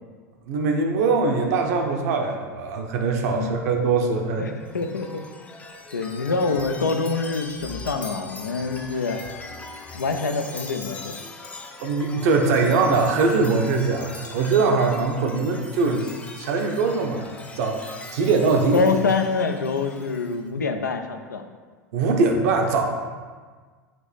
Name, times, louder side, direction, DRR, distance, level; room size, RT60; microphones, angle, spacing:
voice 1, 0.5-4.4 11.8-16.1 16.4-17.2 17.6-18.8 21.9-22.8, right 4 dB, 60° right, 2 dB, 0.7 m, -22 dB
voice 2, 4.4-5.2 5.9-9.2 9.9-11.2 18.7-21.4, left 4 dB, 90° left, 6 dB, 0.4 m, -25 dB
Chime, 4.5-20.4, left 2 dB, 15° left, 0.5 m, -41 dB
5.8 x 2.6 x 3.2 m, 1.5 s
hypercardioid pair, 90°, 9 cm